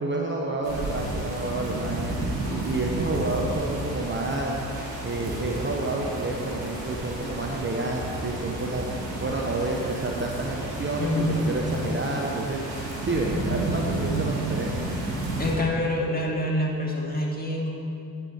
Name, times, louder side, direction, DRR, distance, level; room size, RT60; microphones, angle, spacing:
voice 1, 0.0-12.6 13.0-14.8, right 2 dB, 25° right, 0 dB, 1.0 m, -29 dB
sound 1, 0.6-15.5, right 2 dB, 85° right, 2.1 m, -32 dB
voice 2, 11.0-11.4 15.4-17.7, left 1 dB, 20° left, -2 dB, 2.2 m, -26 dB
9.0 x 7.7 x 4.6 m, 2.5 s
hypercardioid pair, 45°, 49 cm